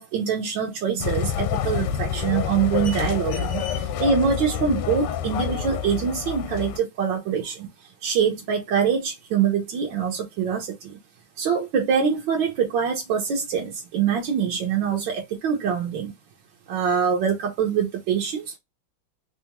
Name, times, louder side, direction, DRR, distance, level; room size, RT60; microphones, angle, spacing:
voice 1, 0.0-7.7 8.0-11.0 11.4-16.1 16.7-18.6, right 7 dB, 65° right, 1.4 m, -24 dB
sound 1, 1.0-6.8, left 8 dB, 90° left, 1.5 m, -27 dB
3.5 x 2.4 x 2.8 m
omnidirectional pair, 2.4 m